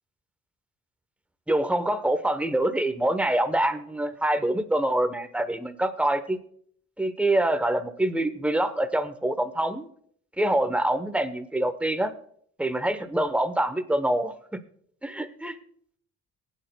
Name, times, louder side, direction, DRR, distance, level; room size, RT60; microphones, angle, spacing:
voice 1, 1.5-6.4 7.0-9.9 10.4-12.1 12.6-14.3 15.0-15.6, right 1 dB, 5° right, 8 dB, 0.9 m, -25 dB
19.5 x 9.2 x 2.2 m, 0.63 s
cardioid pair, 90°, 30 cm